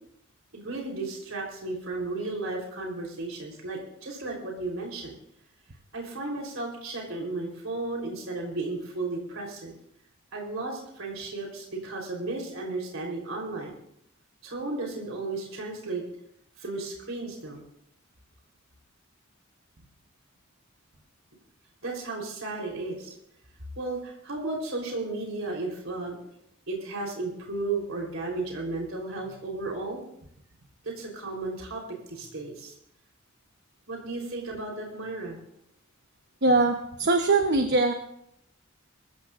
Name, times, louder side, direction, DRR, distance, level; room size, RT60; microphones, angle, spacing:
voice 1, 0.5-5.1 5.9-9.7 10.3-13.7 14.4-16.0 16.6-17.6 21.8-23.2 23.8-26.2 26.7-30.0 30.8-32.7 33.9-35.4, right 3 dB, 70° right, -1 dB, 3.8 m, -34 dB
voice 2, 36.4-37.9, right 3 dB, 55° right, 5 dB, 1.0 m, -22 dB
24.0 x 14.5 x 2.5 m, 0.75 s
head